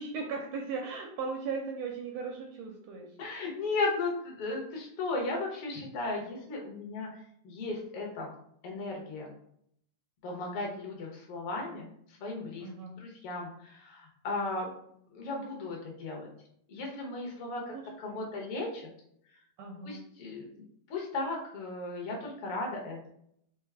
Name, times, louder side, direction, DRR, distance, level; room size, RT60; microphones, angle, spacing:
voice 1, 0.0-3.1 12.6-13.0 17.6-18.2 19.6-20.0, right 4 dB, 80° right, 1 dB, 1.5 m, -38 dB
voice 2, 3.2-8.3 8.6-9.3 10.2-12.7 13.0-14.7 15.1-16.3 16.7-18.9 19.8-20.5 20.9-23.1, left 3 dB, 60° left, 0 dB, 1.7 m, -36 dB
4.8 x 3.1 x 3.5 m, 0.69 s
omnidirectional pair, 3.6 m